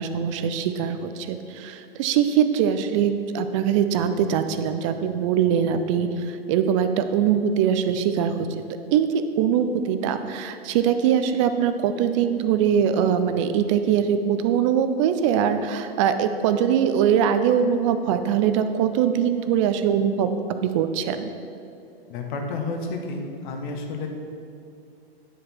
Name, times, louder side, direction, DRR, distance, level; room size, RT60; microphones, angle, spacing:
voice 1, 0.0-8.5 8.9-20.3 20.6-21.3, right 8 dB, 30° right, 9 dB, 0.4 m, -22 dB
voice 2, 22.1-24.1, left 3 dB, 50° left, 3 dB, 1.2 m, -31 dB
9.2 x 5.1 x 4.4 m, 2.6 s
hypercardioid pair, 125°, 31 cm